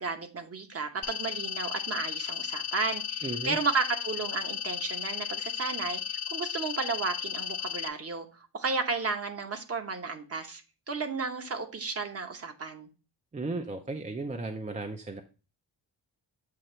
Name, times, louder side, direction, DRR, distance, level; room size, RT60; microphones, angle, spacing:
voice 1, 0.0-8.3 8.5-10.6 10.9-12.9, right 4 dB, 35° right, 6 dB, 0.9 m, -33 dB
sound 1, 1.0-7.9, left 9 dB, 65° left, 0.7 m, -35 dB
voice 2, 3.2-3.6 13.3-15.2, right 3 dB, 20° right, 5 dB, 0.4 m, -35 dB
7.7 x 2.9 x 4.2 m, 0.34 s
wide cardioid pair, 140°, 40 cm